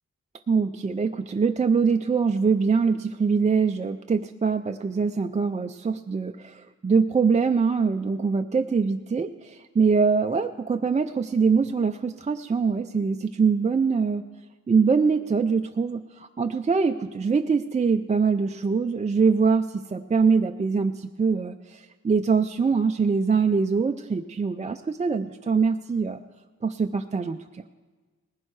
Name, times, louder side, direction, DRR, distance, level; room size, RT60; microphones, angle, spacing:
voice 1, 0.5-14.3 14.7-26.2 26.6-27.6, right 5 dB, 25° right, 6 dB, 0.4 m, -23 dB
19.0 x 11.0 x 4.7 m, 1.4 s
wide cardioid pair, 85°, 32 cm